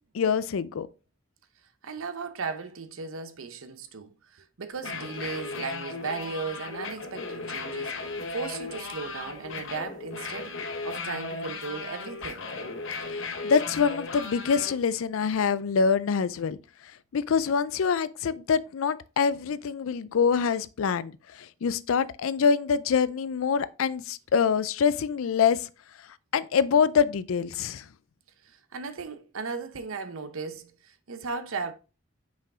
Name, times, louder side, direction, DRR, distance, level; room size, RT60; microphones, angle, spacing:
voice 1, 0.1-0.9 13.1-16.6 17.1-25.7 26.3-27.9, left 6 dB, 80° left, 0.4 m, -25 dB
voice 2, 1.8-4.1 4.6-8.0 8.3-10.5 10.8-12.5 28.7-31.7, right 4 dB, 75° right, 0.8 m, -36 dB
sound 1, 4.7-14.7, left 3 dB, 60° left, 0.9 m, -36 dB
5.8 x 4.8 x 3.6 m
head